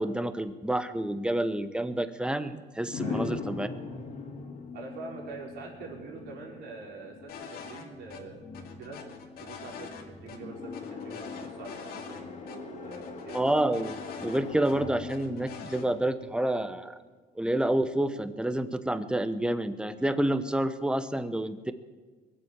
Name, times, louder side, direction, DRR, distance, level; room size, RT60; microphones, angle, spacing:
voice 1, 0.0-3.7 13.3-17.0 17.4-21.7, right 1 dB, 5° right, 11 dB, 0.9 m, -29 dB
sound 1, 2.9-16.7, left 4 dB, 45° left, 2.7 m, -41 dB
voice 2, 4.7-8.4 8.8-13.4, right 3 dB, 75° right, -2 dB, 5.0 m, -44 dB
sound 2, 7.3-8.2 8.5-10.0 10.3-10.4 10.7-12.2 12.5-12.6 12.9-14.7 15.1-15.9, left 6 dB, 65° left, 2.2 m, -44 dB
22.5 x 8.0 x 7.5 m, 1.4 s
cardioid pair, 110°, 17 cm